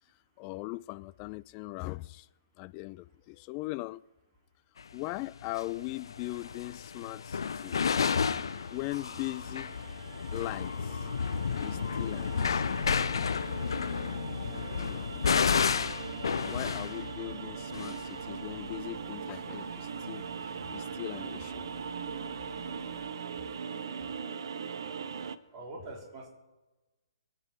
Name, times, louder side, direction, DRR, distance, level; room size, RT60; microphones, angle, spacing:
voice 1, 0.4-2.3 2.6-4.0 4.9-8.1 8.7-9.8 10.3-11.1 11.6-12.7 14.8-15.1 16.5-20.3 20.7-21.7, left 20 dB, 30° left, 0.3 m, -40 dB
sound 1, 4.8-4.9 5.4-20.7 21.0-23.1, left 6 dB, 65° left, 0.6 m, -32 dB
sound 2, 7.9-25.4, right 6 dB, 55° right, 0.7 m, -41 dB
voice 2, 25.5-26.3, right 2 dB, 25° right, 3.9 m, -44 dB
24.5 x 8.3 x 4.7 m
figure-of-eight pair, 125°, 3 cm